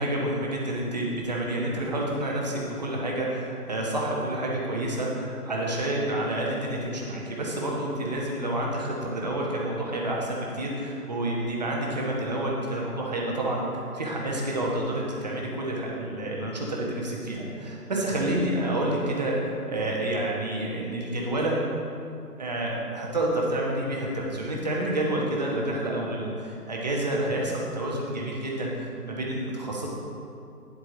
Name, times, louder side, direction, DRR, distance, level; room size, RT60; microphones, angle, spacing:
voice 1, 0.0-21.6 22.4-29.9, right 1 dB, 25° right, -3 dB, 1.1 m, -29 dB
10.0 x 8.0 x 3.8 m, 2.6 s
figure-of-eight pair, 165°, 47 cm